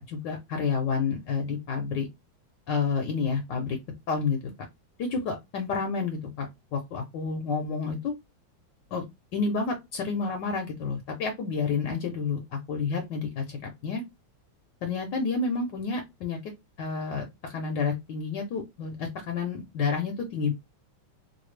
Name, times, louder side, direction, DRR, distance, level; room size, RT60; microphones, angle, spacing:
voice 1, 0.0-2.1 2.7-3.8 4.1-4.4 5.0-8.1 8.9-9.0 9.3-14.0 14.8-16.5 16.8-20.5, left 5 dB, 70° left, 4 dB, 1.2 m, -30 dB
3.9 x 2.3 x 3.2 m, 0.20 s
omnidirectional pair, 2.2 m